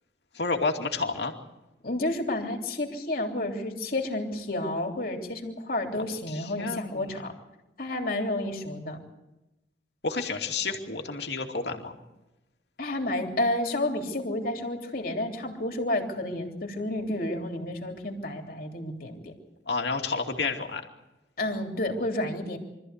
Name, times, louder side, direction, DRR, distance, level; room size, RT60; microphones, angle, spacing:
voice 1, 0.3-1.3 5.9-7.2 10.0-11.9 19.7-20.8, left 4 dB, 75° left, 3 dB, 2.6 m, -30 dB
voice 2, 1.8-7.3 7.8-9.0 12.8-19.3 21.4-22.6, left 1 dB, 55° left, 3 dB, 3.2 m, -30 dB
24.5 x 14.5 x 8.2 m, 0.97 s
head